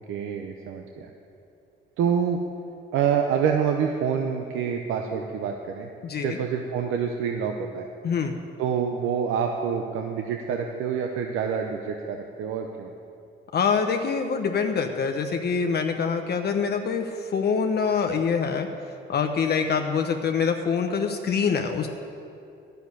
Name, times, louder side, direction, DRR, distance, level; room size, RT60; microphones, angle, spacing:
voice 1, 0.1-1.1 2.0-2.4 2.9-5.9 6.2-7.9 8.6-12.9, right 7 dB, 85° right, 3 dB, 0.8 m, -27 dB
voice 2, 6.0-6.4 8.0-8.4 13.5-18.7 19.1-21.9, left 6 dB, 55° left, 5 dB, 0.9 m, -25 dB
11.5 x 6.8 x 9.6 m, 2.6 s
cardioid pair, 90°, 20 cm